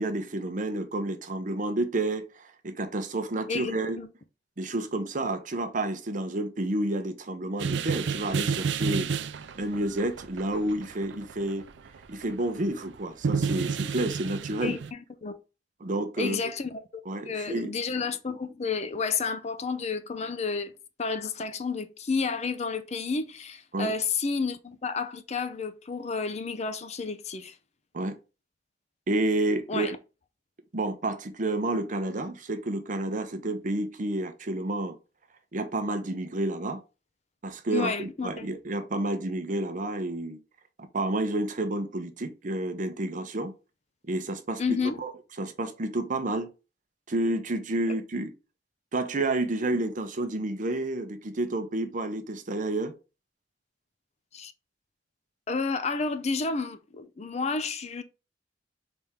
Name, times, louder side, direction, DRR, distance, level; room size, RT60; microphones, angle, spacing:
voice 1, 0.0-4.0 4.6-9.1 9.5-11.6 12.1-14.8 15.8-16.4 17.1-17.7 23.7-23.9 27.9-28.2 29.1-29.9 30.7-35.0 35.5-36.8 37.4-40.4 40.9-43.5 44.1-44.6 45.0-45.1 45.4-46.5 47.1-48.3 48.9-52.9, right 2 dB, 45° right, 0.7 m, -30 dB
voice 2, 3.5-4.1 14.6-15.4 16.2-16.8 17.2-20.7 21.0-27.6 29.7-30.0 37.7-38.5 44.6-45.0 54.3-54.5 55.5-58.0, left 4 dB, 40° left, 0.5 m, -31 dB
sound 1, 7.6-13.0 13.2-14.9, right 5 dB, 70° right, 0.4 m, -30 dB
4.2 x 3.5 x 3.5 m
head